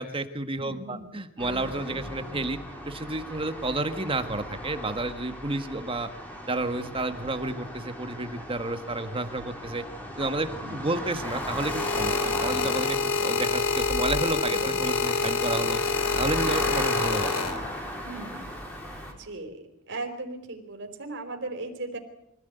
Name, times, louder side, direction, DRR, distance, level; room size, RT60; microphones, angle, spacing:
voice 1, 0.0-2.6 2.8-6.1 6.5-9.8 10.2-13.0 13.2-15.8 16.2-17.4, right 2 dB, 25° right, 8 dB, 1.7 m, -31 dB
voice 2, 0.6-1.1 10.6-11.0 14.5-14.8 18.0-18.5 19.1-22.0, right 2 dB, 60° right, 5 dB, 4.5 m, -38 dB
sound 1, 1.4-19.1, equal, 10° left, 5.0 m, -37 dB
sound 2, 11.1-18.0 18.8-19.1, left 4 dB, 65° left, 2.7 m, -27 dB
25.0 x 15.5 x 9.4 m, 0.80 s
head